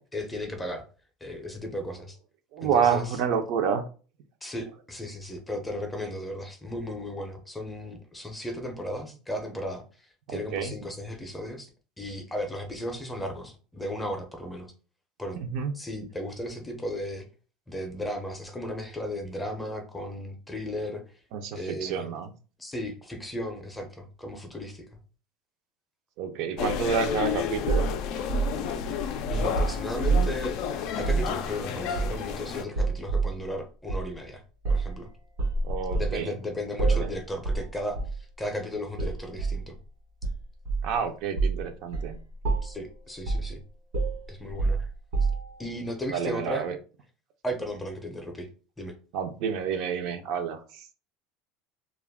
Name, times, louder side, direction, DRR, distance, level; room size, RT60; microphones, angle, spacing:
voice 1, 0.1-0.8 1.2-2.2 2.6-3.2 4.4-11.7 12.0-14.7 15.2-15.4 15.7-17.3 17.7-21.0 21.5-22.1 22.6-24.8 29.3-34.4 34.7-35.1 35.9-39.8 42.6-43.6 44.3-44.9 45.6-46.7 47.4-48.5 48.8-48.9, left 1 dB, 10° left, 4 dB, 0.5 m, -35 dB
voice 2, 2.5-3.8 10.3-10.7 15.3-15.7 21.3-22.3 26.2-27.9 35.6-36.3 36.9-37.1 40.8-42.2 46.1-46.8 49.1-50.9, right 7 dB, 60° right, 6 dB, 0.4 m, -29 dB
sound 1, 26.6-32.6, left 7 dB, 55° left, 0.3 m, -31 dB
sound 2, 27.7-30.4 31.0-31.3 32.0-32.4 32.7-33.4 33.9-34.1 34.6-35.0 35.4-36.2 36.8-37.1 37.4-37.7 38.0-38.2 39.0-39.6 40.2-41.0 41.4-41.6 41.9-42.1 42.4-42.8 43.3-43.5 43.9-45.6, right 4 dB, 85° right, 1.2 m, -27 dB
2.3 x 2.1 x 3.4 m, 0.36 s
supercardioid pair, 145°, 0 cm